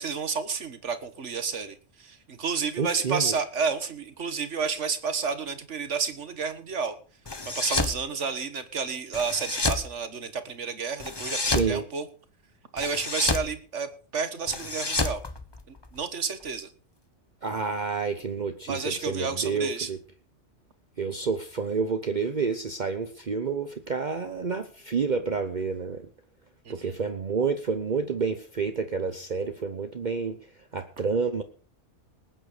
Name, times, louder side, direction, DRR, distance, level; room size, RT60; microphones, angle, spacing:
voice 1, 0.0-7.0 7.5-12.1 12.7-15.2 15.7-16.7 18.7-19.9 26.7-27.0, right 5 dB, 75° right, 11 dB, 1.8 m, -31 dB
voice 2, 2.8-3.3 11.4-11.8 17.4-20.0 21.0-26.1 26.7-30.4 30.7-31.4, right 5 dB, 40° right, 8 dB, 1.0 m, -29 dB
sound 1, 7.3-8.0 9.1-9.9 11.0-11.7 12.8-13.5 14.5-16.0, left 2 dB, 20° left, 1.2 m, -29 dB
19.5 x 9.4 x 5.0 m, 0.40 s
omnidirectional pair, 1.2 m